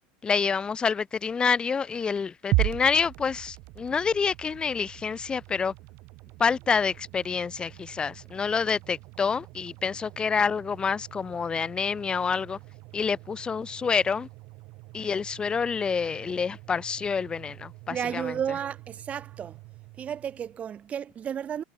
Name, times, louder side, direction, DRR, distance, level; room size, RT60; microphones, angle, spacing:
voice 1, 0.2-5.7 6.4-12.6 12.9-14.3 14.9-18.3, left 5 dB, 15° left, 1.7 m, -27 dB
sound 1, 2.5-20.7, right 24 dB, 50° right, 2.3 m, -38 dB
voice 2, 17.9-19.6 20.0-21.6, right 8 dB, 25° right, 4.5 m, -33 dB
supercardioid pair, 145°, 5 cm